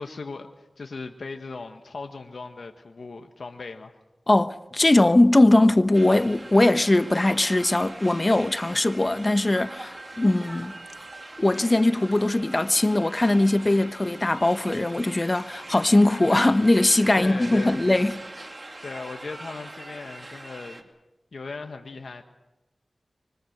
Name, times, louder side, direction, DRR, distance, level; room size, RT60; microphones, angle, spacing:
voice 1, 0.0-3.9 17.2-17.8 18.8-20.8 21.3-22.2, left 4 dB, 80° left, 1.5 m, -37 dB
voice 2, 4.3-10.7 11.4-18.2, left 2 dB, 35° left, 1.0 m, -20 dB
sound 1, 5.9-20.8, right 2 dB, 40° right, 2.7 m, -42 dB
24.5 x 23.0 x 6.7 m
cardioid pair, 50°, 0 cm